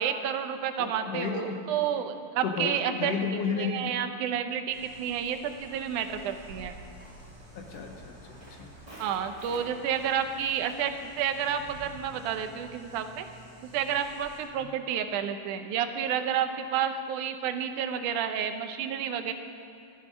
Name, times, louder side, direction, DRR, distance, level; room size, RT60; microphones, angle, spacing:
voice 1, 0.0-3.2 3.5-6.8 9.0-13.3 13.7-19.3, right 8 dB, 90° right, 8 dB, 2.3 m, -30 dB
voice 2, 0.8-1.6 2.4-3.8 7.5-8.7 14.6-14.7, left 5 dB, 65° left, 3 dB, 1.8 m, -33 dB
sound 1, 4.7-14.4, right 1 dB, 50° right, 4.3 m, -51 dB
Walk footsteps, 5.4-12.8, right 1 dB, 10° right, 3.0 m, -53 dB
14.0 x 12.0 x 5.2 m, 2.4 s
omnidirectional pair, 3.4 m